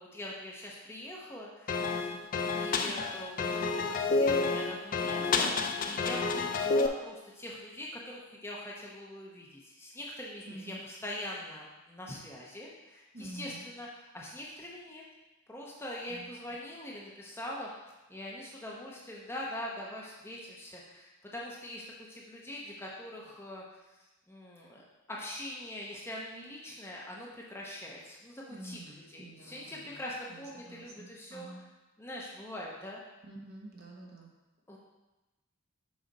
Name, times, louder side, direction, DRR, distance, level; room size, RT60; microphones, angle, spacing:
voice 1, 0.0-2.1 2.5-15.0 15.5-21.8 22.1-23.6 24.3-31.5 32.0-33.0 34.7-34.8, left 1 dB, 10° left, -4 dB, 0.8 m, -43 dB
sound 1, 1.7-6.9, left 4 dB, 40° left, 0.3 m, -29 dB
voice 2, 10.5-10.8 13.1-13.6 16.1-16.3 28.5-30.0 30.3-31.6 33.2-34.3, right 1 dB, 45° right, -2 dB, 1.2 m, -48 dB
6.4 x 5.0 x 4.1 m, 1.1 s
head